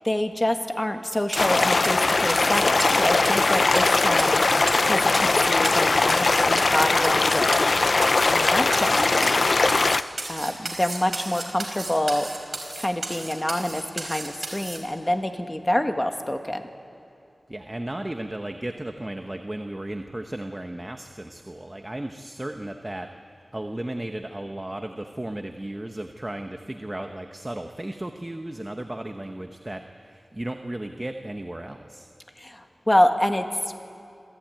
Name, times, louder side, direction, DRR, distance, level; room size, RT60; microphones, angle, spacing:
voice 1, 0.0-7.8 8.3-9.4 10.3-12.3 12.7-16.6 32.4-33.5, left 1 dB, 20° left, 6 dB, 1.7 m, -26 dB
sound 1, 1.1-14.8, right 2 dB, 50° right, 4.4 m, -34 dB
sound 2, 1.3-10.0, left 3 dB, 60° left, 0.5 m, -20 dB
voice 2, 17.5-23.1 23.5-32.1, right 1 dB, 20° right, 5 dB, 1.1 m, -35 dB
26.5 x 15.0 x 9.1 m, 2.6 s
wide cardioid pair, 70°, 0 cm